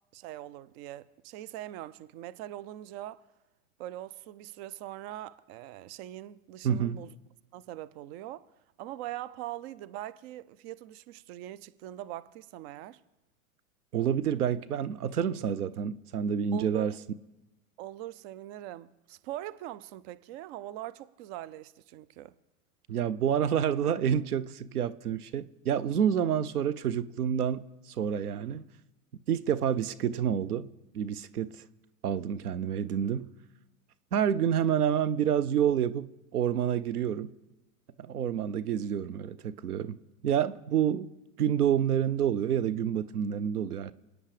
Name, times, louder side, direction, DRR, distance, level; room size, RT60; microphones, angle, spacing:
voice 1, 0.1-3.3 3.8-7.1 7.5-8.5 8.8-13.0 16.5-16.9 17.8-22.3 32.4-32.5, right 14 dB, 45° right, 0.7 m, -42 dB
voice 2, 6.6-7.0 13.9-16.9 22.9-28.6 29.3-30.7 30.9-31.5 32.0-33.3 34.1-37.3 38.0-40.0 40.2-41.1 41.4-43.9, right 9 dB, 85° right, 0.9 m, -28 dB
28.0 x 9.6 x 5.0 m
hypercardioid pair, 110°, 44 cm